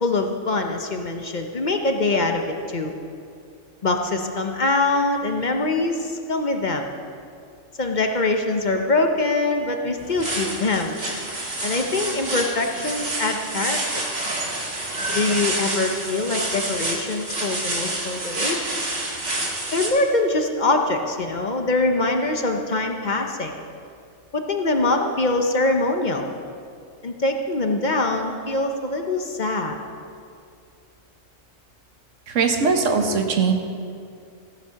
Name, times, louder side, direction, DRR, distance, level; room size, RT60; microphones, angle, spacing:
voice 1, 0.0-2.9 3.8-6.9 7.8-11.0 11.6-14.1 15.1-18.6 19.7-23.5 24.3-26.3 27.0-29.8, left 2 dB, 40° left, 4 dB, 0.8 m, -23 dB
sound 1, 10.0-19.9, right 2 dB, 50° right, 2.0 m, -28 dB
voice 2, 32.3-33.5, right 5 dB, 70° right, 4 dB, 1.4 m, -20 dB
15.0 x 7.2 x 5.8 m, 2.4 s
omnidirectional pair, 1.4 m